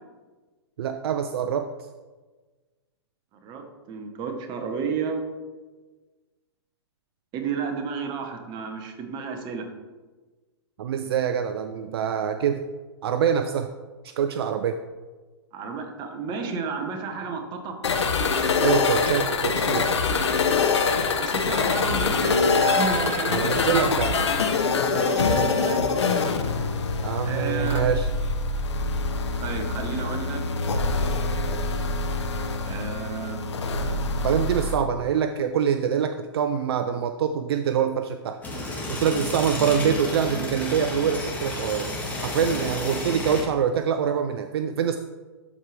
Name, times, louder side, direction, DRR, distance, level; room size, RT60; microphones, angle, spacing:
voice 1, 0.8-1.7 10.8-12.6 13.0-13.7 14.0-14.8 18.6-19.9 23.3-24.2 27.0-28.1 34.2-38.4 38.9-41.9 42.2-45.0, right 8 dB, 65° right, 9 dB, 0.4 m, -25 dB
voice 2, 3.4-5.2 7.3-9.7 15.5-17.8 21.2-24.4 24.9-26.2 27.2-27.9 29.4-30.4 32.6-33.4, right 5 dB, 30° right, 4 dB, 1.2 m, -32 dB
sound 1, 17.8-34.7, left 4 dB, 80° left, 0.9 m, -24 dB
sound 2, 38.4-43.4, left 2 dB, 10° left, 1.7 m, -31 dB
12.0 x 4.7 x 3.2 m, 1.3 s
hypercardioid pair, 125°, 14 cm